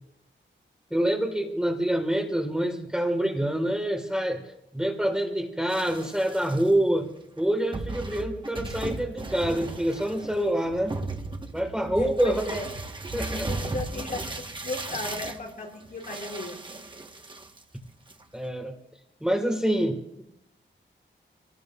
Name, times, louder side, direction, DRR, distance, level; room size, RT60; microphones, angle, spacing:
voice 1, 0.9-7.1 7.4-11.0 11.5-12.6 13.1-13.5 18.3-18.8 19.2-20.2, right 1 dB, 5° right, 2 dB, 1.3 m, -26 dB
sound 1, 5.7-6.7 7.4-7.5 7.7-17.8 18.1-18.4, right 2 dB, 25° right, 1.0 m, -36 dB
voice 2, 11.9-12.7 13.3-16.6, left 2 dB, 45° left, -2 dB, 5.1 m, -36 dB
27.5 x 17.5 x 2.2 m, 0.80 s
wide cardioid pair, 160°, 20 cm